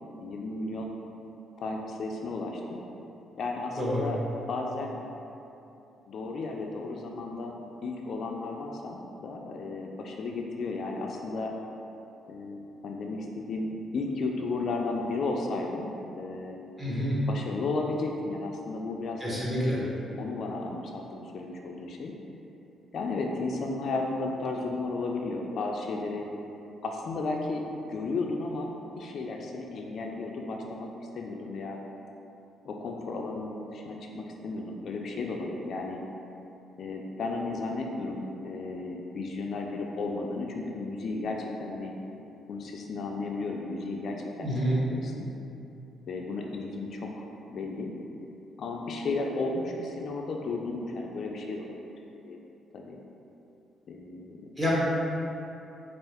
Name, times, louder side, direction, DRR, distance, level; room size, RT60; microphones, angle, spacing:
voice 1, 0.2-0.9 1.6-2.8 3.4-4.2 4.5-5.0 6.1-11.5 12.3-15.9 16.2-16.6 17.3-19.5 19.8-22.1 22.9-26.3 26.8-28.7 29.0-31.8 32.6-36.0 36.8-41.9 42.5-45.3 46.1-47.9 48.6-51.8 52.2-52.4 52.7-53.0 53.9-54.4, left 3 dB, 60° left, 1 dB, 0.3 m, -34 dB
voice 2, 3.8-4.1 16.8-17.2 19.2-19.8 44.4-44.8 54.6-54.7, equal, 15° right, -8 dB, 1.2 m, -28 dB
4.4 x 2.4 x 3.4 m, 2.9 s
cardioid pair, 90°, 0 cm